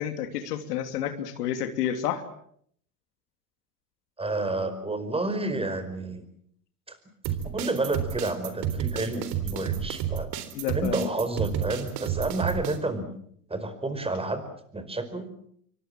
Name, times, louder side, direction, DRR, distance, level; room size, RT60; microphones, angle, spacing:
voice 1, 0.0-2.3 10.5-11.1, left 10 dB, 80° left, 7 dB, 3.0 m, -30 dB
voice 2, 4.2-6.2 6.9-7.0 7.5-10.3 10.7-13.1 13.5-14.4 14.7-15.3, right 2 dB, 10° right, 11 dB, 5.0 m, -30 dB
sound 1, 7.2-12.8, right 9 dB, 55° right, 3.9 m, -31 dB
26.5 x 23.5 x 7.5 m, 0.67 s
hypercardioid pair, 105°, 46 cm